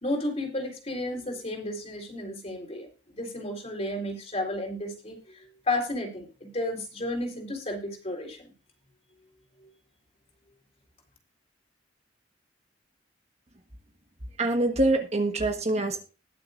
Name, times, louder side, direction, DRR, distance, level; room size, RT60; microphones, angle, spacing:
voice 1, 0.0-2.9 3.1-8.5 9.6-9.7, left 1 dB, 35° left, 2 dB, 3.8 m, -32 dB
voice 2, 14.4-16.1, right 2 dB, 35° right, 5 dB, 1.3 m, -25 dB
20.5 x 6.9 x 2.5 m, 0.33 s
head